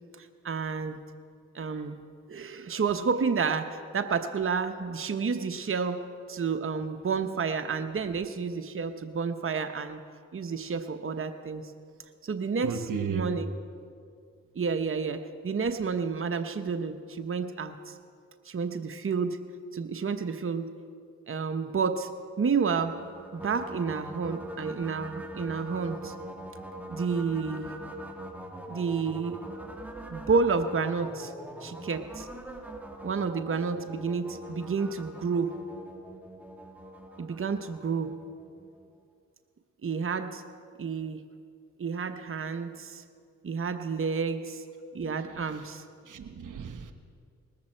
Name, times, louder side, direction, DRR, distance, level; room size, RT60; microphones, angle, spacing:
voice 1, 0.2-1.0 1.5-2.0 2.3-6.0 6.3-10.0 10.3-11.6 12.2-13.5 14.5-18.0 18.4-19.4 19.7-20.7 21.3-23.0 23.3-26.1 26.9-27.7 28.7-29.4 30.1-31.3 31.6-32.3 33.0-35.6 37.2-38.2 39.8-40.4 40.8-41.2 41.8-43.0 43.4-44.6 44.9-45.8, right 5 dB, 40° right, 8 dB, 0.9 m, -30 dB
voice 2, 12.6-13.3 45.0-45.8 46.0-46.9, right 6 dB, 75° right, 8 dB, 1.1 m, -36 dB
sound 1, 22.7-39.0, right 1 dB, 5° right, 1.8 m, -43 dB
19.5 x 14.0 x 4.5 m, 2.2 s
cardioid pair, 55°, 32 cm